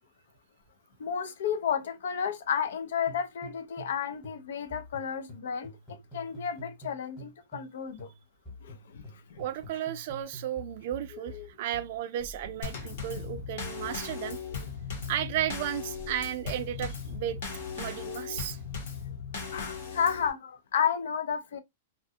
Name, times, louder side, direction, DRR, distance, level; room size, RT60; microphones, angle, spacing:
voice 1, 1.0-8.1 8.6-9.4 11.1-11.5 14.5-14.7 19.5-21.6, left 7 dB, 80° left, 0.5 m, -32 dB
sound 1, 3.1-4.0 4.2-7.7 8.0-18.1, equal, 5° left, 1.1 m, -47 dB
voice 2, 9.4-14.4 15.1-17.4 17.8-18.6, right 11 dB, 45° right, 0.3 m, -34 dB
Drum kit / Snare drum / Bass drum, 12.6-20.3, left 6 dB, 60° left, 0.9 m, -38 dB
2.4 x 2.2 x 2.6 m
supercardioid pair, 170°, 0 cm